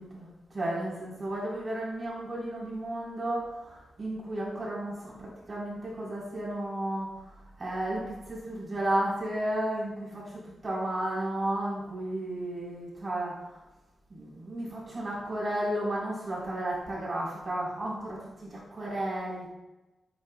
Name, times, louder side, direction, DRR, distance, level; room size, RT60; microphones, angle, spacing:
voice 1, 0.0-7.3 7.6-13.5 14.1-19.5, right 1 dB, 30° right, -6 dB, 3.8 m, -33 dB
16.0 x 8.5 x 2.3 m, 1.0 s
wide cardioid pair, 140°, 0 cm